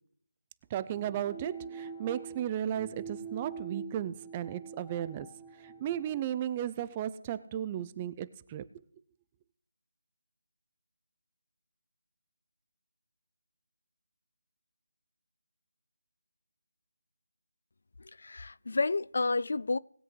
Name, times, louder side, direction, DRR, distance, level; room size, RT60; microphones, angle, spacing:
voice 1, 0.7-5.3 5.6-8.6, right 10 dB, 20° right, 0.4 m, -35 dB
sound 1, 0.9-6.2, right 5 dB, 10° left, 0.7 m, -45 dB
voice 2, 18.0-19.8, left 3 dB, 60° left, 0.3 m, -30 dB
20.0 x 7.7 x 3.2 m
figure-of-eight pair, 165°, 0 cm